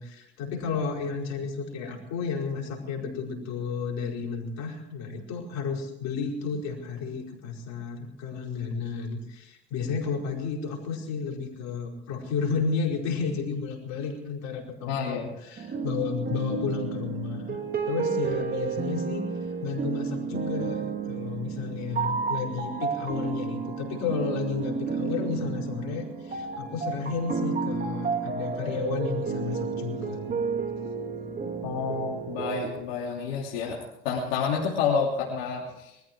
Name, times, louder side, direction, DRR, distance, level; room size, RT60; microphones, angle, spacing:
voice 1, 0.0-17.6 17.9-19.3 19.6-30.2, left 5 dB, 65° left, 0 dB, 5.3 m, -32 dB
voice 2, 14.9-15.3 31.6-36.0, left 5 dB, 85° left, -4 dB, 3.1 m, -29 dB
sound 1, 15.6-32.7, right 5 dB, 30° right, 2.4 m, -31 dB
21.5 x 14.0 x 4.7 m, 0.89 s
supercardioid pair, 90°, 30 cm